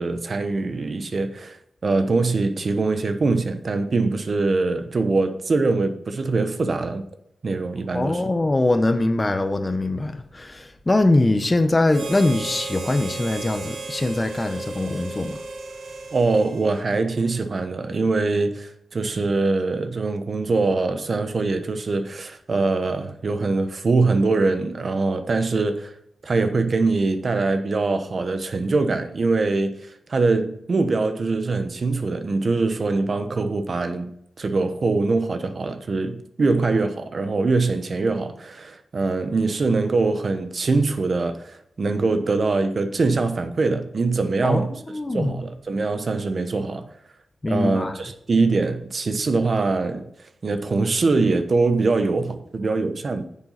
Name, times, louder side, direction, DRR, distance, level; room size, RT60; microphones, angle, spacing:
voice 1, 0.0-1.6 1.8-7.0 7.4-8.2 16.1-25.9 26.2-29.7 30.1-34.1 34.4-44.7 45.1-46.9 47.5-50.1 50.4-53.2, right 3 dB, 50° right, 1.0 m, -23 dB
voice 2, 7.9-15.4 44.4-45.4 47.4-47.9, left 2 dB, 25° left, 0.9 m, -22 dB
Harmonica, 11.9-17.4, right 3 dB, 70° right, 1.3 m, -35 dB
9.6 x 7.4 x 4.1 m
wide cardioid pair, 110°, 0 cm